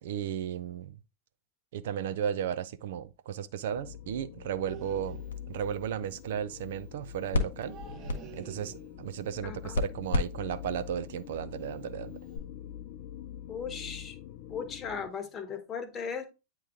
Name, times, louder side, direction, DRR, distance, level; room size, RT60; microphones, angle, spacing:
voice 1, 0.0-1.0 1.7-5.2 5.5-7.8 8.3-12.2, right 9 dB, 60° right, 0.5 m, -35 dB
sound 1, 3.7-15.1, left 10 dB, 50° left, 0.4 m, -45 dB
sound 2, 4.7-5.5 7.6-9.1 10.8-11.2 11.5-11.9 12.2-12.4, right 7 dB, 35° right, 1.0 m, -48 dB
sound 3, 4.8-12.4, left 3 dB, 75° left, 1.1 m, -37 dB
voice 2, 9.4-9.8 13.5-14.2 14.5-16.3, left 6 dB, 25° left, 1.1 m, -37 dB
8.9 x 3.1 x 3.6 m
figure-of-eight pair, 95°, 0 cm